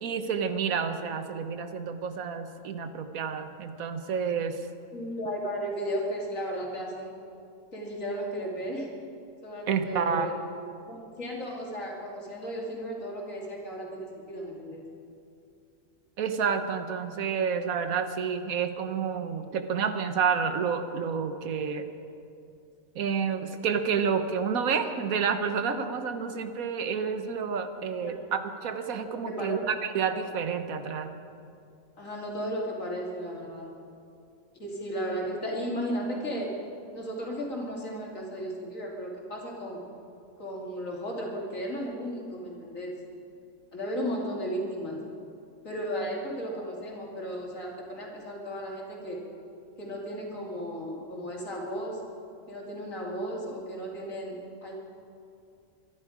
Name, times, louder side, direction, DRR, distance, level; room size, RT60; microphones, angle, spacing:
voice 1, 0.0-4.6 9.7-10.3 16.2-21.9 22.9-31.1, right 6 dB, 85° right, 9 dB, 1.4 m, -29 dB
voice 2, 4.9-7.1 7.7-8.9 9.4-10.4 10.9-14.8 28.0-28.2 29.2-29.6 32.0-33.7 34.5-36.5 36.9-39.8 40.4-42.9 43.7-45.0 45.6-49.2 49.8-52.0 52.5-54.4 54.6-54.7, equal, 70° left, -2 dB, 3.1 m, -35 dB
24.0 x 11.5 x 5.0 m, 2.5 s
omnidirectional pair, 1.4 m